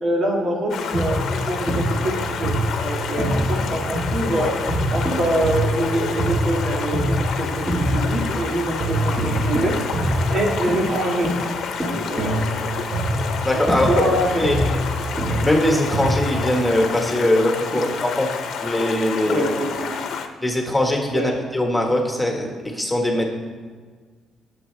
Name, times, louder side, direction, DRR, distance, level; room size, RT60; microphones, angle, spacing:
voice 1, 0.0-2.5 2.8-4.5 4.9-9.7 10.3-11.3 11.8-12.4 13.7-14.8 17.7-17.9 19.2-20.0 21.1-21.3, right 1 dB, 60° right, -2 dB, 2.2 m, -25 dB
Stream, 0.7-20.3, left 6 dB, 75° left, 0.9 m, -29 dB
sound 1, 0.7-8.4 8.8-16.4, right 1 dB, 20° right, 2.0 m, -24 dB
voice 2, 13.4-13.9 14.3-14.6 15.4-18.3 18.6-19.4 20.4-23.2, left 1 dB, 5° left, 1 dB, 1.7 m, -21 dB
17.0 x 7.1 x 3.4 m, 1.5 s
cardioid pair, 90°, 0 cm